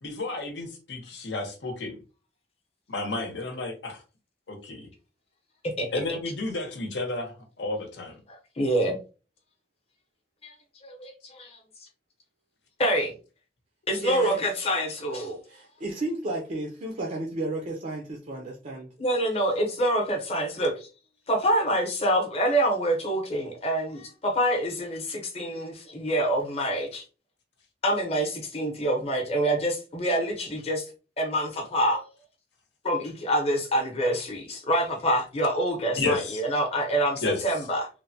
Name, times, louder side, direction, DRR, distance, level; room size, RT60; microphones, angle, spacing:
voice 1, 0.0-1.9 2.9-4.0 4.5-4.9 5.9-8.2 36.0-36.4 37.2-37.4, left 2 dB, 75° left, 0.8 m, -31 dB
voice 2, 8.3-9.0 10.4-10.5 10.8-11.6 12.8-13.1 13.9-15.4 19.0-20.9 21.3-27.0 27.8-30.9 31.2-32.0 32.8-37.9, right 1 dB, 35° left, 0.8 m, -26 dB
voice 3, 14.0-14.4 15.5-18.9, right 2 dB, 40° right, 0.5 m, -33 dB
3.2 x 2.1 x 2.6 m
head